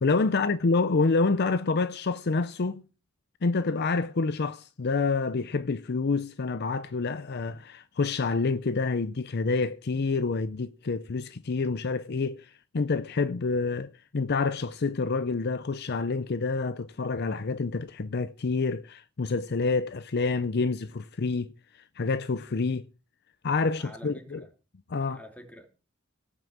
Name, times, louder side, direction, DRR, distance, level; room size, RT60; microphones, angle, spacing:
voice 1, 0.0-2.8 3.4-21.5 22.0-22.9 23.4-24.4 24.9-25.2, left 4 dB, 55° left, 0.6 m, -28 dB
voice 2, 23.8-24.5 25.0-25.8, equal, 5° left, 2.7 m, -47 dB
17.5 x 6.2 x 7.2 m
head